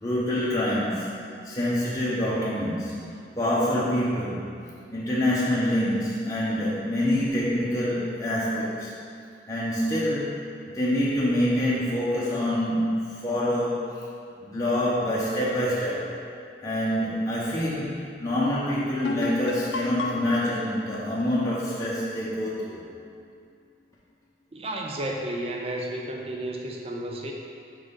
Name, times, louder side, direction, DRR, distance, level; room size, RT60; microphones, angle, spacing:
voice 1, 0.0-1.1 1.4-2.9 3.4-4.5 4.9-8.9 9.5-10.4 10.7-13.9 14.4-16.1 16.6-22.8, left 1 dB, 20° left, -8 dB, 0.7 m, -26 dB
sound 1, 19.0-22.6, left 2 dB, 75° left, 0.4 m, -34 dB
voice 2, 24.5-27.3, right 1 dB, 35° right, 0 dB, 0.6 m, -32 dB
4.8 x 4.0 x 5.2 m, 2.4 s
head